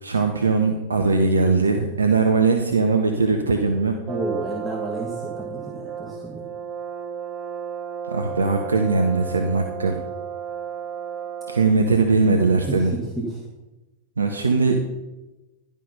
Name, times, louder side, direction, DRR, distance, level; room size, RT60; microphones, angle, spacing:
voice 1, 0.0-4.0 8.1-10.0 11.5-13.0 14.2-14.8, right 4 dB, 75° right, 4 dB, 0.8 m, -20 dB
voice 2, 4.1-6.4, right 2 dB, 15° right, -2 dB, 1.6 m, -31 dB
Brass instrument, 4.1-11.9, right 8 dB, 30° right, 0.7 m, -33 dB
11.0 x 5.5 x 5.5 m, 1.1 s
figure-of-eight pair, 90°, 0 cm